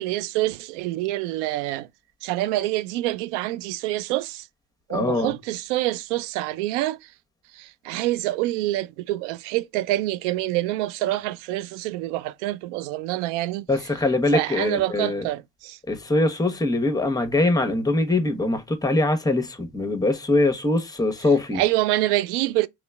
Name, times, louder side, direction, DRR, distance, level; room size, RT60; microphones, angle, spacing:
voice 1, 0.0-1.9 2.2-4.5 4.9-7.1 7.5-13.9 14.3-15.8 21.5-22.7, right 16 dB, 80° right, 0.5 m, -26 dB
voice 2, 4.9-5.3 13.7-15.2 15.9-21.6, left 2 dB, 10° left, 1.1 m, -22 dB
5.1 x 3.3 x 2.3 m
hypercardioid pair, 70°, 35 cm